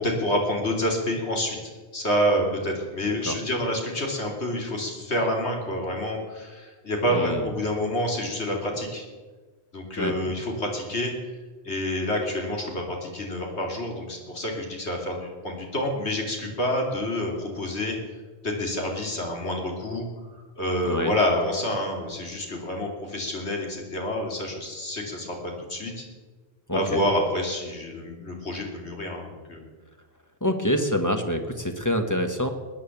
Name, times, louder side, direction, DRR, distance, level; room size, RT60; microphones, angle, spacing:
voice 1, 0.0-1.6 1.9-9.0 9.7-11.1 11.6-18.0 18.4-20.0 20.6-25.3 25.7-26.0 26.7-29.6, left 1 dB, 80° left, 1 dB, 3.2 m, -28 dB
voice 2, 7.1-7.5 10.0-10.2 20.8-21.1 26.7-27.0 30.4-32.5, equal, 15° left, 5 dB, 1.3 m, -26 dB
20.0 x 9.6 x 7.2 m, 1.4 s
omnidirectional pair, 1.1 m